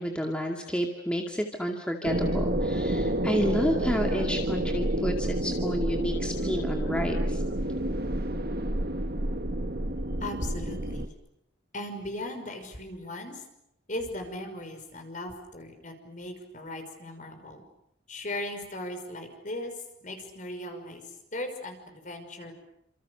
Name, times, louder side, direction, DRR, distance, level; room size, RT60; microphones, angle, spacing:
voice 1, 0.0-7.4, equal, 5° left, 1 dB, 2.3 m, -30 dB
sound 1, 2.0-11.1, right 1 dB, 50° right, 1.6 m, -29 dB
voice 2, 10.2-11.1 11.7-13.4 13.9-17.6 18.1-19.7 20.0-21.0 21.3-22.5, left 1 dB, 40° left, 6 dB, 5.8 m, -37 dB
30.0 x 27.5 x 6.8 m, 0.82 s
head